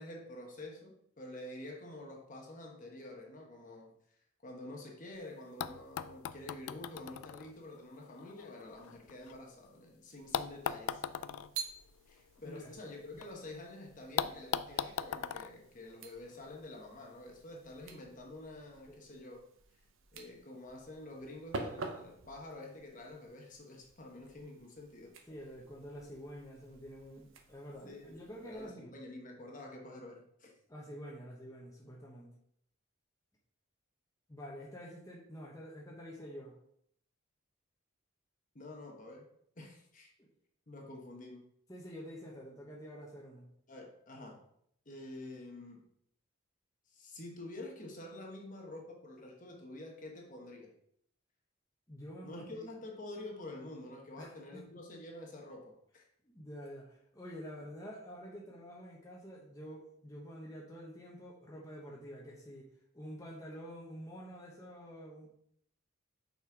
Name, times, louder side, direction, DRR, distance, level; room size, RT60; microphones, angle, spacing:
voice 1, 0.0-3.9 4.4-11.0 12.1-19.4 20.1-25.1 27.8-30.5 38.5-39.3 39.6-40.1 40.7-41.4 43.7-44.4 44.9-45.8 46.9-50.7 52.2-56.1, left 2 dB, 40° left, 0 dB, 1.1 m, -48 dB
sound 1, 5.1-5.2 5.6-9.7 10.3-13.3 13.6-13.7 14.2-16.6 17.5-17.6, left 8 dB, 80° left, 0.3 m, -40 dB
sound 2, 10.1-28.7, right 4 dB, 70° right, 0.8 m, -50 dB
voice 2, 12.4-12.7 18.9-19.0 25.3-28.9 30.7-32.3 34.3-36.5 40.2-40.3 41.7-43.5 51.9-52.6 54.2-54.6 56.2-62.7 62.9-65.3, equal, 15° left, -3 dB, 1.0 m, -48 dB
5.9 x 4.4 x 4.6 m, 0.70 s
head